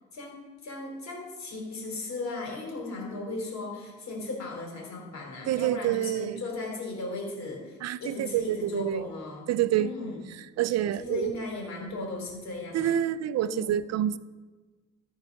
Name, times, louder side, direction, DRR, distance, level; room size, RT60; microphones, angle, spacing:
voice 1, 0.6-9.5 9.8-10.2 11.0-12.9 13.4-13.7, left 3 dB, 65° left, 0 dB, 3.5 m, -36 dB
voice 2, 5.5-6.4 7.8-9.0 9.5-9.9 10.6-11.4 12.7-14.2, right 12 dB, 60° right, 16 dB, 0.4 m, -27 dB
14.0 x 4.7 x 5.3 m, 1.3 s
cardioid pair, 90°, 30 cm